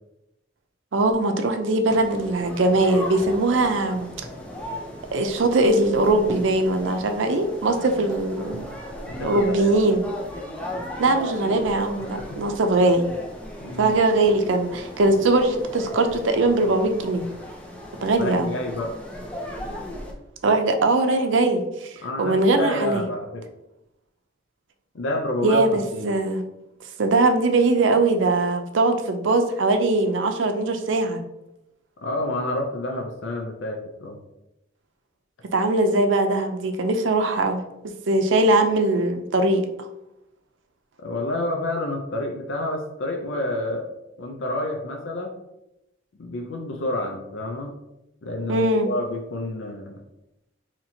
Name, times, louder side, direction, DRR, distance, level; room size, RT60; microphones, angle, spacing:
voice 1, 0.9-4.1 5.1-8.7 9.2-10.0 11.0-13.1 13.8-17.3 18.0-18.5 20.4-21.6 22.2-23.0 25.4-26.4 27.0-31.2 35.5-37.6 38.1-39.6 48.5-48.9, right 2 dB, 80° right, 6 dB, 0.5 m, -21 dB
Swimming pool, 1.9-20.1, left 1 dB, 5° left, 0.4 m, -37 dB
voice 2, 9.1-9.8 12.1-12.4 13.6-13.9 18.2-18.9 22.0-23.5 24.9-25.6 25.9-26.1 32.0-34.2 41.0-43.9 44.2-45.4 46.2-47.7 48.2-50.0, left 1 dB, 80° left, 2 dB, 0.5 m, -29 dB
4.2 x 2.9 x 2.7 m, 0.89 s
head